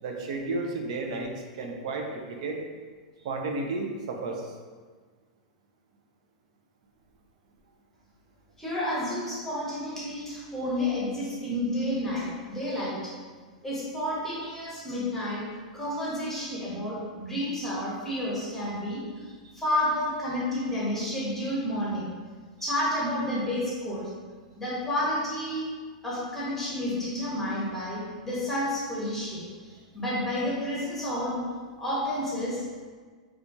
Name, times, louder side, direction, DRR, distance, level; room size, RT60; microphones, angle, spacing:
voice 1, 0.0-2.6 3.2-4.5 19.4-19.5, right 3 dB, 65° right, 2 dB, 0.5 m, -33 dB
voice 2, 8.6-13.1 13.6-15.5 15.7-19.0 19.5-22.1 22.6-24.1 24.6-25.7 26.0-29.5 29.9-31.5 31.8-32.6, left 1 dB, 10° left, -7 dB, 1.0 m, -30 dB
4.1 x 2.4 x 2.6 m, 1.5 s
hypercardioid pair, 120°, 4 cm